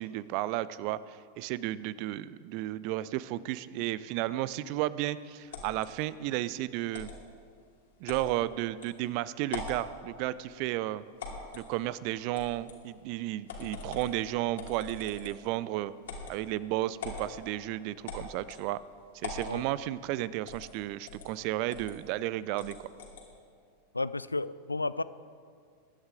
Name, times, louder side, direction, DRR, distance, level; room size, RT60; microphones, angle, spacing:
voice 1, 0.0-7.1 8.0-11.0 11.5-15.9 16.3-18.8 19.2-22.8, right 15 dB, 45° right, 18 dB, 0.5 m, -33 dB
sound 1, 5.5-5.9 6.9-7.2 8.1-8.3 8.8-8.9 9.4-9.8 11.2-11.7 12.3-12.8 13.5-14.1 14.6-15.4 16.0-16.4 17.0-17.3 18.1-18.6 19.2-19.5 20.5-20.7 21.1-21.3 21.7-21.9 22.6-23.3, left 4 dB, 60° left, 2.9 m, -41 dB
voice 2, 23.9-25.0, left 3 dB, 80° left, 16 dB, 0.4 m, -32 dB
22.0 x 11.0 x 3.8 m, 2.1 s
figure-of-eight pair, 90°, 0 cm